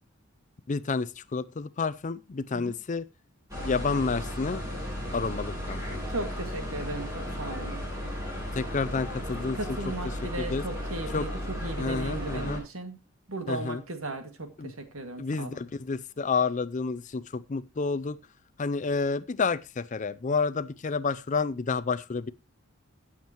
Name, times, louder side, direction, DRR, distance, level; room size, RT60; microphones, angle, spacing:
voice 1, 0.7-3.1 3.6-4.7 5.1-6.0 8.5-9.6 10.4-10.6 11.1-11.3 11.8-12.6 13.5-13.8 14.6-14.7 15.2-18.2 18.6-22.3, left 4 dB, 35° left, 0.5 m, -30 dB
sound 1, 3.5-12.6, equal, 15° right, 7.3 m, -35 dB
voice 2, 6.1-7.8 9.5-13.0 13.3-15.6, right 2 dB, 85° right, 2.1 m, -36 dB
17.0 x 7.3 x 3.0 m
head